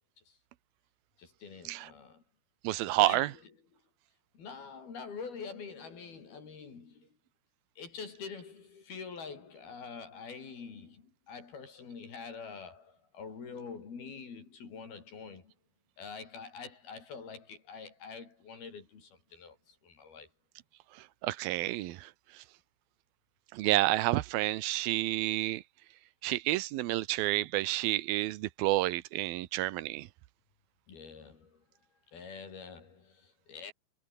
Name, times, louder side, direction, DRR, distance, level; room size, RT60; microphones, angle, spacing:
voice 1, 1.2-2.2 3.0-3.5 4.4-7.1 7.8-15.5 16.0-20.3 23.6-23.7 30.9-31.6 32.1-33.7, left 5 dB, 85° left, 7.1 m, -46 dB
voice 2, 2.6-3.3 21.2-22.1 23.5-25.6 26.2-30.1, right 17 dB, 85° right, 2.8 m, -29 dB
omnidirectional pair, 4.3 m